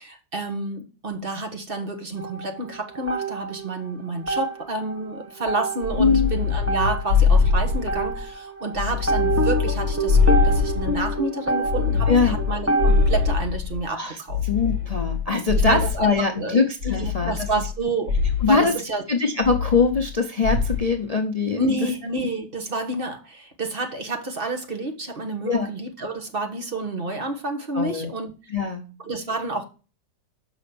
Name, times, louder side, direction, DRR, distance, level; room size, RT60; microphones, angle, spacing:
voice 1, 0.0-14.4 15.5-16.1 16.4-18.1 18.5-19.0 21.6-28.5 29.0-29.6, right 2 dB, 35° right, 1.2 m, -29 dB
sound 1, 2.2-3.9 4.2-13.3, right 3 dB, 15° right, 0.5 m, -28 dB
sound 2, 5.8-8.3 8.7-11.2 11.6-13.8 14.3-16.2 16.8-17.8 18.1-18.6 19.4-20.2 20.4-20.9, left 5 dB, 70° right, 5.0 m, -23 dB
voice 2, 6.0-6.3 12.1-12.4 13.9-14.2 14.4-17.5 18.4-18.7 19.1-21.6 25.4-25.7 27.7-28.1 28.5-28.9, left 4 dB, 80° left, 0.3 m, -22 dB
6.3 x 5.1 x 6.8 m
omnidirectional pair, 1.9 m